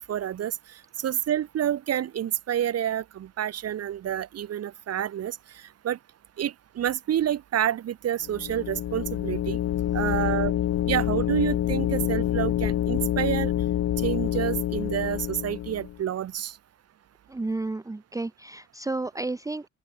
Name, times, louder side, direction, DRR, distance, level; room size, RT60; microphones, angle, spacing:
voice 1, 0.0-5.4 5.8-6.0 6.4-9.6 9.9-10.5 10.8-13.5 14.0-16.6, right 10 dB, 55° right, 0.9 m, -28 dB
sound 1, 8.2-16.0, left 12 dB, 65° left, 1.4 m, -27 dB
voice 2, 17.3-19.7, right 2 dB, 10° right, 0.8 m, -32 dB
open air
cardioid pair, 90°, 30 cm